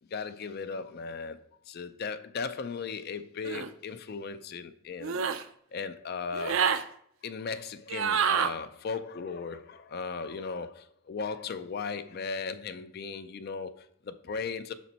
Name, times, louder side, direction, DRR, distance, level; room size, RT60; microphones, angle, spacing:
voice 1, 0.1-5.2 5.7-6.8 7.2-14.7, left 5 dB, 50° left, 0.4 m, -37 dB
sound 1, 3.4-3.7 5.0-5.4 6.3-6.8 7.9-8.5, right 7 dB, 70° right, 0.4 m, -27 dB
5.9 x 4.2 x 4.2 m
head